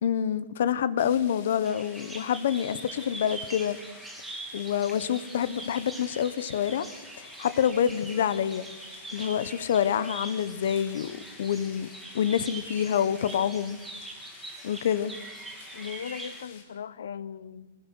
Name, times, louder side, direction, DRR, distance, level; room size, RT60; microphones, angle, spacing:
voice 1, 0.0-3.8 4.5-6.9 7.2-8.7 9.1-11.9 12.1-13.8 14.6-15.1, left 9 dB, 55° left, 1.0 m, -27 dB
sound 1, 1.0-16.6, left 6 dB, 35° left, 3.7 m, -51 dB
Bird vocalization bird call bird song, 1.6-16.4, right 2 dB, 5° right, 1.8 m, -43 dB
voice 2, 15.7-17.8, left 7 dB, 90° left, 0.9 m, -38 dB
23.5 x 20.0 x 6.3 m
hypercardioid pair, 180°, 0 cm